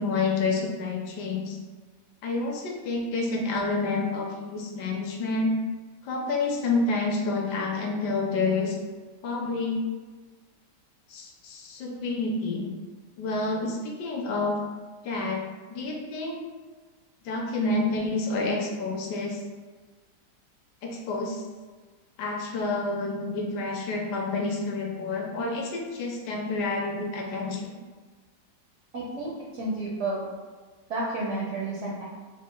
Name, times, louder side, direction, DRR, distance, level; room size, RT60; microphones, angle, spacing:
voice 1, 0.0-1.6 2.2-5.5 6.0-8.8 9.2-9.8 11.1-12.7 13.2-14.6 15.0-15.4 15.7-16.4 17.2-19.4 20.8-21.4 22.2-27.7, left 3 dB, 75° left, 0 dB, 1.1 m, -28 dB
voice 2, 28.9-30.2 30.9-32.0, right 2 dB, 75° right, -5 dB, 0.6 m, -31 dB
3.5 x 2.1 x 3.7 m, 1.4 s
omnidirectional pair, 1.9 m